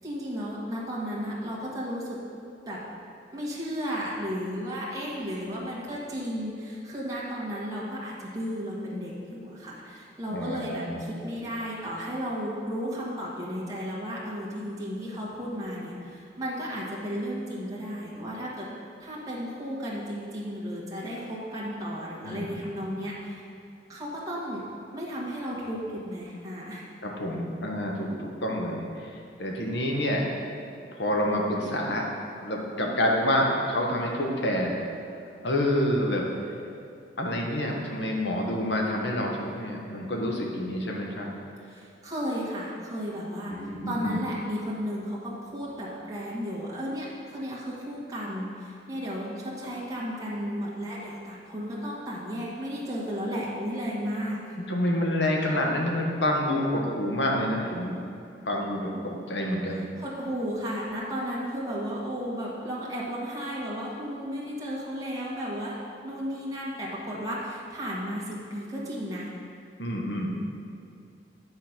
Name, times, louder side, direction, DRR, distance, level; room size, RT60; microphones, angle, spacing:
voice 1, 0.0-2.2 2.7-2.8 3.3-18.7 19.0-23.4 23.9-24.6 24.9-26.8 41.6-54.6 59.7-65.7 66.0-69.3, equal, 20° right, -6 dB, 1.4 m, -34 dB
voice 2, 10.3-11.1 22.2-22.5 27.0-30.2 30.9-32.0 32.4-34.8 35.4-36.3 37.2-41.3 43.5-44.2 54.7-58.0 58.4-59.9 69.8-70.3, left 1 dB, 85° left, 0 dB, 1.2 m, -28 dB
9.4 x 4.0 x 5.9 m, 2.6 s
head